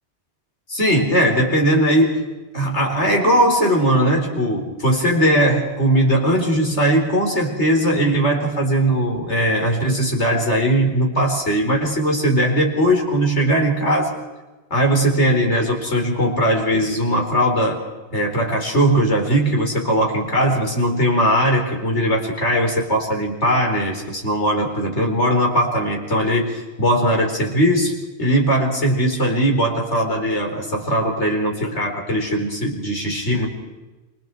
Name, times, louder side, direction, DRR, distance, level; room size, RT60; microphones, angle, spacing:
voice 1, 0.7-2.2 2.5-14.1 14.7-17.8 18.1-26.5 26.8-33.5, right 1 dB, 80° left, 1 dB, 4.9 m, -19 dB
29.0 x 25.0 x 4.7 m, 1.1 s
omnidirectional pair, 1.2 m